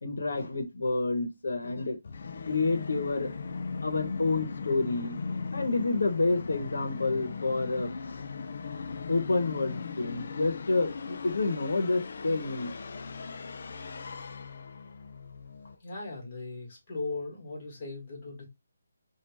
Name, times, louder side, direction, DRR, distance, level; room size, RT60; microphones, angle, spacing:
voice 1, 0.0-2.0 2.5-3.3 3.8-5.2 5.5-8.2 9.1-12.7, left 3 dB, 80° left, 1.1 m, -29 dB
Musical instrument, 2.0-15.7, left 4 dB, 45° left, 0.4 m, -39 dB
voice 2, 15.8-18.4, left 3 dB, 25° left, 1.9 m, -38 dB
3.4 x 2.6 x 3.0 m
hypercardioid pair, 175°, 0 cm